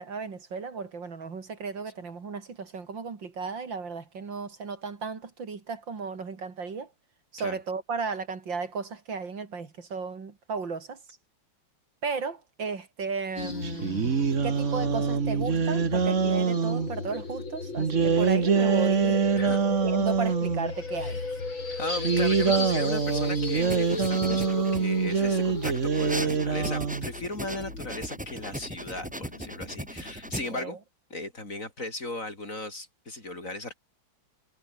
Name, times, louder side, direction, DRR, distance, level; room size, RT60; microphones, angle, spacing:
voice 1, 0.0-6.9 7.3-11.0 12.0-14.1 14.4-19.3 19.7-21.2 30.5-30.8, right 5 dB, 65° right, 3.4 m, -35 dB
sound 1, 13.4-30.5, left 3 dB, 75° left, 5.6 m, -35 dB
sound 2, 13.6-16.9 17.8-20.7 21.9-27.1, right 6 dB, 40° right, 1.8 m, -25 dB
voice 2, 19.4-19.7 21.0-21.3 21.7-30.8 31.1-33.8, left 2 dB, 40° left, 5.6 m, -37 dB
sound 3, 23.6-25.1 25.6-30.6, right 1 dB, 5° right, 1.4 m, -38 dB
omnidirectional pair, 2.2 m